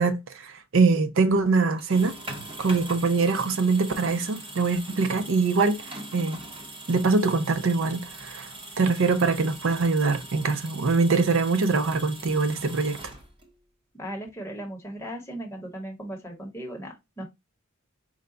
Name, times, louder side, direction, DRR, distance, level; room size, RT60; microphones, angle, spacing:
voice 1, 0.0-2.2 2.6-6.4 6.9-8.5 8.8-13.1, right 4 dB, 60° right, 0.5 m, -23 dB
sound 1, 1.7-13.6, right 2 dB, 25° right, 0.9 m, -41 dB
voice 2, 14.0-17.2, right 1 dB, 10° left, 1.0 m, -37 dB
4.9 x 2.2 x 3.7 m
head